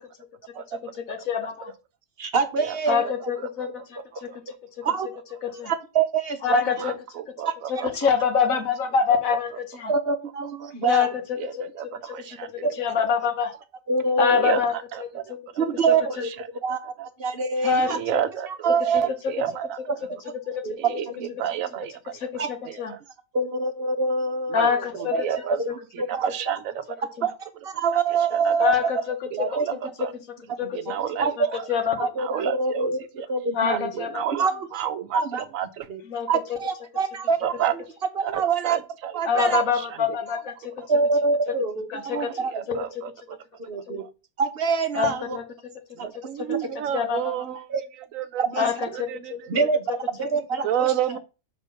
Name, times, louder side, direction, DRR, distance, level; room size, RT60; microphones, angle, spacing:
voice 1, 1.1-1.7 2.9-4.3 5.4-5.7 6.4-6.9 7.7-9.9 10.8-11.1 11.6-11.7 12.0-12.2 12.8-13.5 14.2-15.4 15.9-16.0 17.6-18.2 20.5-21.0 22.1-22.9 24.5-25.2 27.2-27.3 28.6-29.6 30.6-30.8 31.4-32.5 33.5-34.2 36.1-36.3 39.2-40.7 41.9-42.3 43.9-44.0 44.9-45.4 46.9-47.3 48.6-49.1, left 6 dB, 85° left, 1.6 m, -25 dB
voice 2, 2.2-3.0 4.3-4.4 4.8-5.1 5.7-6.8 9.9-11.1 12.6-12.7 13.9-14.6 15.6-16.3 16.6-16.9 17.2-18.0 18.5-19.1 19.9-20.0 20.6-20.8 21.1-21.3 22.4-22.5 23.3-24.8 25.1-25.2 25.6-25.7 26.0-26.5 27.2-28.9 29.4-29.6 30.6-31.6 32.0-33.9 34.3-34.8 35.1-35.4 35.9-36.0 36.3-37.8 38.1-38.8 39.1-39.6 40.9-42.8 43.7-44.0 44.4-45.4 46.0-46.1 47.7-47.8 48.4-48.6 49.5-50.9, right 4 dB, 50° right, 1.0 m, -25 dB
voice 3, 6.8-8.1 11.4-11.8 12.1-12.5 14.3-15.2 17.9-18.7 19.0-19.8 20.8-21.1 21.4-22.2 22.7-22.8 24.5-25.6 26.2-26.6 28.3-28.5 29.5-29.7 30.0-30.1 30.7-31.3 32.2-33.3 33.6-35.9 37.4-37.7 38.2-39.5 42.1-43.1 44.0-44.1 46.0-47.6 48.1-49.3 50.6-51.2, right 10 dB, 80° right, 1.1 m, -30 dB
6.4 x 3.7 x 5.7 m
omnidirectional pair, 1.4 m